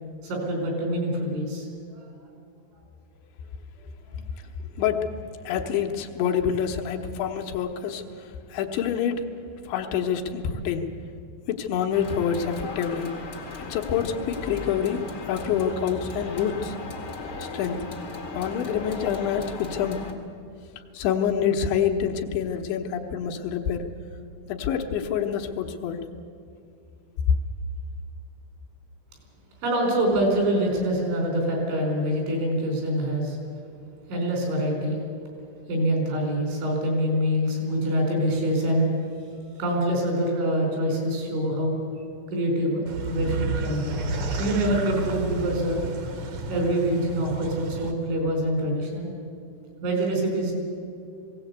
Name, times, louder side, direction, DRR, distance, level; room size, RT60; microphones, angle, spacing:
voice 1, 0.2-2.1 4.1-4.2 29.6-33.4 34.1-35.0 35.7-38.9 39.6-41.8 42.3-45.8 46.5-49.1 49.8-50.5, right 1 dB, 80° right, 1 dB, 7.0 m, -25 dB
voice 2, 4.8-5.1 5.5-8.0 8.5-9.2 9.7-10.9 11.5-13.1 13.6-15.0 15.3-16.7 17.4-17.8 18.3-20.0 20.9-23.8 24.5-26.0, left 8 dB, 75° left, 4 dB, 3.3 m, -26 dB
sound 1, 11.9-20.1, left 3 dB, 55° left, 1.1 m, -37 dB
sound 2, 42.9-47.9, right 2 dB, 60° right, 1.8 m, -31 dB
19.5 x 17.0 x 8.2 m, 2.6 s
omnidirectional pair, 5.3 m